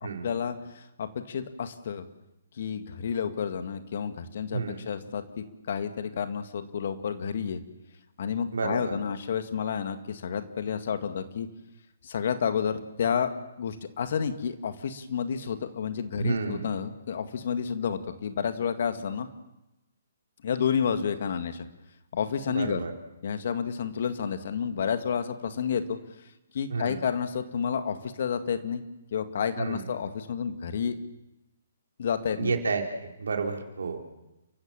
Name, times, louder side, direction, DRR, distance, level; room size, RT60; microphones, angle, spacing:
voice 1, 0.0-2.0 2.6-7.6 8.2-11.5 12.0-13.3 13.6-19.3 20.4-21.7 22.1-22.8 23.2-26.0 26.5-28.8 29.1-31.0 32.0-32.6, left 7 dB, 55° left, 9 dB, 2.0 m, -30 dB
voice 2, 4.5-4.8 8.5-9.0 16.2-16.7 22.5-22.9 26.7-27.0 29.6-29.9 32.4-34.0, right 4 dB, 70° right, 3 dB, 3.6 m, -30 dB
30.0 x 15.0 x 7.4 m, 0.95 s
figure-of-eight pair, 135°, 0 cm